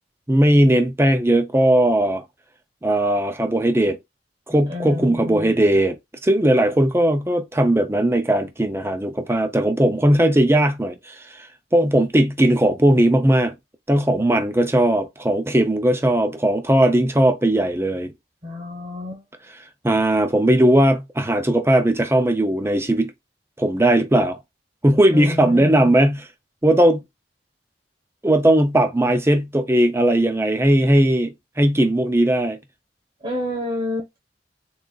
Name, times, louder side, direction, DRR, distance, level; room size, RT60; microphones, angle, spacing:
voice 1, 0.3-2.2 2.8-4.0 4.5-6.0 6.2-11.2 11.7-13.5 13.9-18.1 19.8-23.1 23.6-24.4 24.8-26.3 26.6-27.0 28.2-32.6, right 1 dB, 15° right, 0.7 m, -18 dB
voice 2, 4.7-5.5 18.4-19.2 25.1-26.0 33.2-34.1, left 2 dB, 35° right, 1.1 m, -29 dB
3.9 x 3.7 x 2.3 m
head